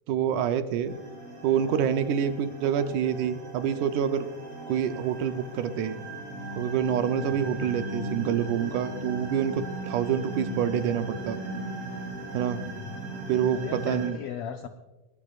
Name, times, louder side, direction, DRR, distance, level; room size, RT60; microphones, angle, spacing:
voice 1, 0.1-0.9 1.4-4.3 4.7-6.0 6.6-11.4 12.3-12.6 13.3-14.2, right 8 dB, 75° right, 8 dB, 2.2 m, -27 dB
sound 1, 0.8-14.1, right 2 dB, 35° right, 7.0 m, -37 dB
voice 2, 7.1-7.5 12.6-13.0 13.5-14.7, left 7 dB, 80° left, 5 dB, 1.3 m, -38 dB
21.5 x 21.0 x 2.5 m, 1.1 s
omnidirectional pair, 3.6 m